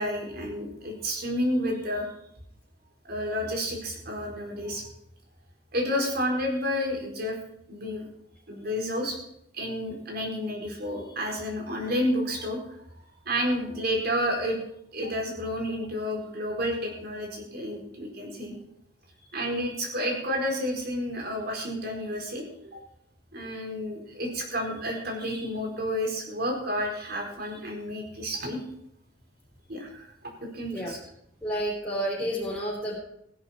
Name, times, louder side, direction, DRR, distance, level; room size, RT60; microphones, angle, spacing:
voice 1, 0.0-2.1 3.1-4.9 5.7-7.4 7.7-8.1 8.5-9.2 9.5-12.6 13.2-14.6 14.9-18.6 19.3-22.4 23.3-28.6 29.7-30.1 30.5-31.0, equal, 50° right, 0 dB, 4.5 m, -30 dB
voice 2, 31.4-33.0, equal, 5° left, -8 dB, 3.7 m, -30 dB
16.5 x 11.0 x 4.4 m, 0.75 s
head